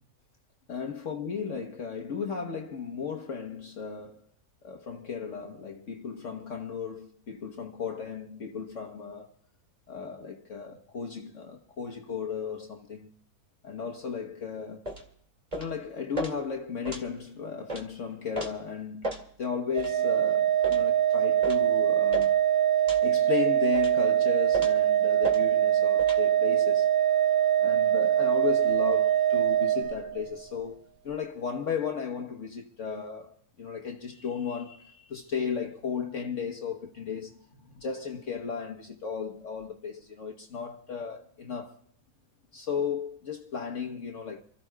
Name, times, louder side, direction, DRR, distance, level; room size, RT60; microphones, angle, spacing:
voice 1, 0.7-4.3 4.6-9.3 9.9-13.1 13.6-14.9 15.5-22.4 23.0-26.9 27.6-41.8 42.5-44.4, left 6 dB, 55° left, 1.3 m, -35 dB
sound 1, 14.9-15.1 15.5-15.7 16.2-16.3 16.8-17.1 17.7-17.8 18.3-18.5 19.0-19.2 19.8-19.9 20.6-20.8 21.4-21.6 22.1-22.3 22.9-23.1 23.7-24.0 24.5-24.8 25.2-25.4 26.0-26.2, right 1 dB, 25° right, 2.1 m, -35 dB
Organ, 19.7-30.4, right 11 dB, 70° right, 1.4 m, -23 dB
28.5 x 14.5 x 2.3 m
omnidirectional pair, 1.6 m